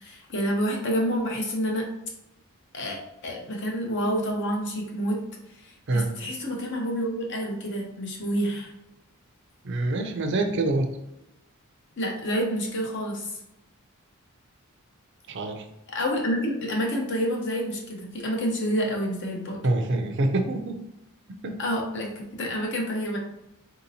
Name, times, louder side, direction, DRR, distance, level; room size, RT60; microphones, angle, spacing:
voice 1, 0.0-1.9 2.7-5.2 5.6-8.7 12.0-13.4 15.9-19.6 21.6-23.2, equal, 55° left, 0 dB, 0.8 m, -28 dB
voice 2, 9.6-10.9 15.3-15.6 19.6-20.8 21.4-21.6, right 2 dB, 50° right, 5 dB, 0.5 m, -25 dB
4.0 x 2.8 x 2.7 m, 0.87 s
head